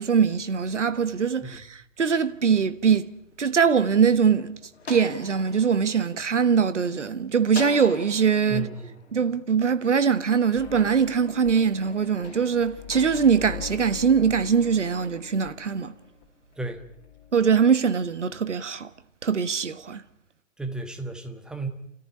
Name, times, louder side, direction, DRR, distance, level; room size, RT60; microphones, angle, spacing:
voice 1, 0.0-4.6 4.9-8.7 9.1-15.9 17.3-18.9 19.2-20.0, right 6 dB, 65° right, 1.5 m, -22 dB
Cell Door, 3.3-7.0 7.5-11.2 11.8-14.5, left 5 dB, 55° left, 2.7 m, -44 dB
voice 2, 8.5-8.9 16.6-16.8 20.6-21.7, right 2 dB, ahead, 1.4 m, -33 dB
sound 1, 10.5-16.3 16.5-17.7, left 11 dB, 25° left, 4.3 m, -43 dB
30.0 x 14.0 x 9.8 m
figure-of-eight pair, 130°, 38 cm